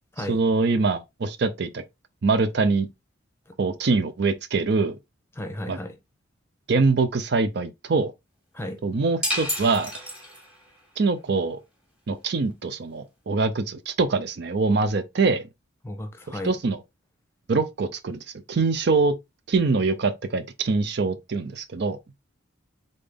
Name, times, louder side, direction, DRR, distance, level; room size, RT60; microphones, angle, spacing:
voice 1, 0.2-1.8 2.2-2.9 3.6-5.0 5.7-5.8 6.7-8.1 8.8-9.9 11.0-11.6 12.1-15.5 16.3-16.8 17.5-18.2 18.5-19.1 19.5-22.0, right 4 dB, 55° right, 0.5 m, -24 dB
voice 2, 5.3-5.9 8.5-8.8 15.8-16.5, left 1 dB, 10° left, 0.9 m, -34 dB
sound 1, 9.2-10.7, equal, 5° right, 1.4 m, -30 dB
3.9 x 3.8 x 3.4 m
head